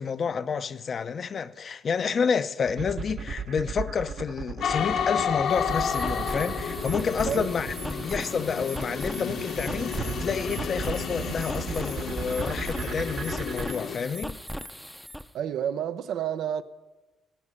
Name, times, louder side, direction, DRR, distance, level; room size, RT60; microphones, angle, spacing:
voice 1, 0.0-14.4, left 6 dB, 50° left, 0.6 m, -29 dB
sound 1, 2.7-13.7, right 5 dB, 55° right, 1.0 m, -35 dB
sound 2, 4.6-14.0, left 7 dB, 80° left, 1.5 m, -32 dB
sound 3, 5.5-15.3, equal, ahead, 0.6 m, -38 dB
voice 2, 15.3-16.6, right 9 dB, 75° right, 0.6 m, -29 dB
15.5 x 5.6 x 9.8 m
cardioid pair, 90°, 0 cm